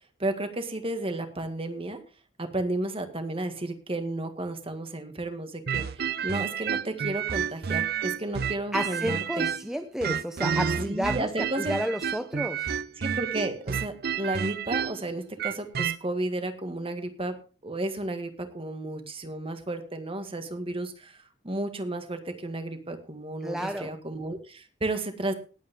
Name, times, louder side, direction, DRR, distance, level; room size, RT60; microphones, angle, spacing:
voice 1, 0.2-2.0 2.4-9.5 10.9-11.7 13.0-17.4 17.6-25.3, right 2 dB, 30° right, 8 dB, 1.8 m, -33 dB
sound 1, 5.7-9.7 10.0-16.0, right 7 dB, 55° right, 0.6 m, -30 dB
voice 2, 8.7-11.3 11.6-12.7 23.4-23.9, equal, 5° right, 6 dB, 0.7 m, -31 dB
18.5 x 8.8 x 3.6 m, 0.36 s
head